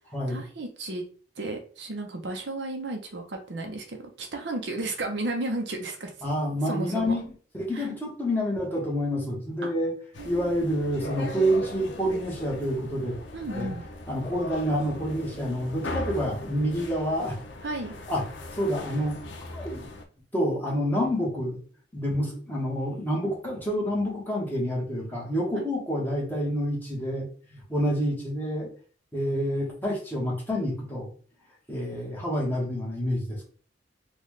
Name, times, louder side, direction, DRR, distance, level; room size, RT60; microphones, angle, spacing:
voice 1, 0.3-1.0 1.4-6.1 6.7-7.1 7.7-7.9 9.6-9.7 10.2-10.5 13.3-13.8 17.6-17.9 25.5-25.6, right 2 dB, 65° right, 3 dB, 0.7 m, -33 dB
voice 2, 6.2-7.3 7.6-9.9 10.2-13.2 13.5-13.7 14.1-17.4 18.1-18.2 18.5-19.2 19.5-19.9 20.3-21.6 21.9-28.7 29.1-31.1 31.7-33.5, equal, 10° left, -3 dB, 1.2 m, -28 dB
sound 1, 10.1-20.0, left 2 dB, 80° left, 0.7 m, -39 dB
4.0 x 2.4 x 3.2 m, 0.42 s
head